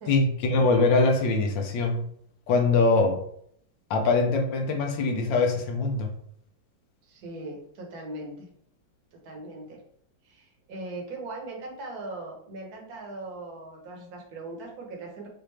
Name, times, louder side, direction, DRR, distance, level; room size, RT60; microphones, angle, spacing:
voice 1, 0.1-2.0 2.5-3.2 3.9-6.1, left 3 dB, 75° left, 3 dB, 1.5 m, -23 dB
voice 2, 7.0-8.5 9.1-9.8 10.2-15.3, right 2 dB, 55° right, -1 dB, 1.5 m, -39 dB
6.2 x 2.5 x 3.3 m, 0.67 s
omnidirectional pair, 2.1 m